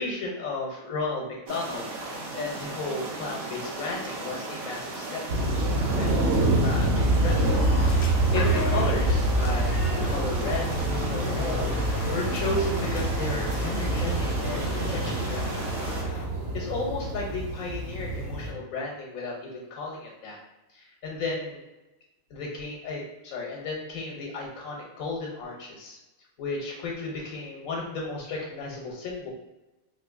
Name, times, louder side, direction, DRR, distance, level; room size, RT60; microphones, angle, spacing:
voice 1, 0.0-1.9 2.3-7.6 8.3-11.7 12.1-15.7 16.5-20.4 20.7-21.6 22.3-26.0 26.4-29.3, left 3 dB, 85° left, -2 dB, 1.1 m, -34 dB
sound 1, 1.5-16.0, right 2 dB, 85° right, 1.2 m, -36 dB
sound 2, 5.3-18.5, right 2 dB, 60° right, 0.8 m, -26 dB
sound 3, 7.3-16.3, left 3 dB, 70° left, 0.8 m, -37 dB
4.0 x 2.6 x 2.4 m, 1.0 s
omnidirectional pair, 1.4 m